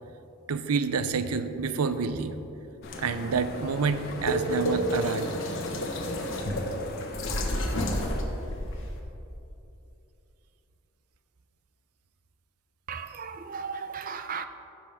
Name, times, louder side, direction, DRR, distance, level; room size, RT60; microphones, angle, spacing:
voice 1, 0.5-2.4 3.0-5.3, right 5 dB, 90° right, 0.5 m, -28 dB
sound 1, 2.8-9.0, left 1 dB, 65° left, 1.2 m, -31 dB
sound 2, 2.8-8.2, left 2 dB, 45° left, 0.7 m, -42 dB
voice 2, 12.9-14.5, right 6 dB, 40° right, 0.4 m, -36 dB
15.5 x 6.2 x 3.5 m
head